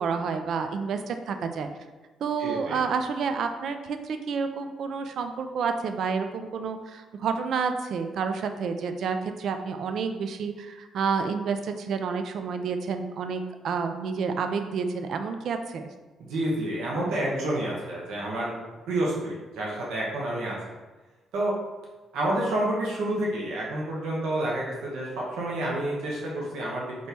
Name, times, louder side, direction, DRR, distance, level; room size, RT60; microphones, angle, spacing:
voice 1, 0.0-1.7 2.2-15.9, right 5 dB, 70° right, 7 dB, 0.4 m, -29 dB
voice 2, 2.4-2.8 16.2-18.6 18.9-20.5 21.3-21.5 22.1-26.8, right 1 dB, 85° right, -4 dB, 1.0 m, -29 dB
4.2 x 3.0 x 3.4 m, 1.2 s
cardioid pair, 90°, 0 cm